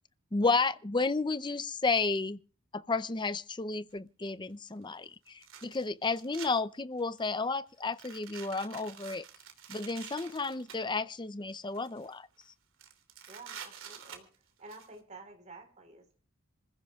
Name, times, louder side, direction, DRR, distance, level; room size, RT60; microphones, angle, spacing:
voice 1, 0.3-2.4 2.7-9.2 9.7-12.3, left 3 dB, 20° left, 0.5 m, -32 dB
sound 1, 3.9-4.0 5.3-6.5 7.0-7.3 7.9-10.8 11.5-12.1 12.4-12.5 12.8-14.9, right 8 dB, 60° right, 3.0 m, -48 dB
voice 2, 13.3-14.3 14.6-16.1, right 3 dB, 30° right, 4.5 m, -51 dB
26.5 x 15.5 x 2.4 m
head